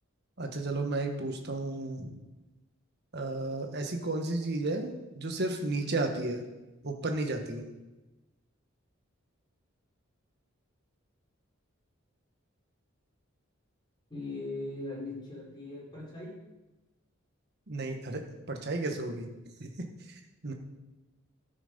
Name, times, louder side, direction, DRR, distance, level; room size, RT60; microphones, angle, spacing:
voice 1, 0.4-2.2 3.1-6.4 6.8-7.7 17.7-18.2 18.5-19.3 19.6-19.7 20.1-20.5, right 2 dB, 55° right, 4 dB, 1.3 m, -33 dB
voice 2, 14.1-16.4, left 2 dB, 20° left, -5 dB, 4.2 m, -39 dB
13.0 x 6.1 x 5.3 m, 1.0 s
head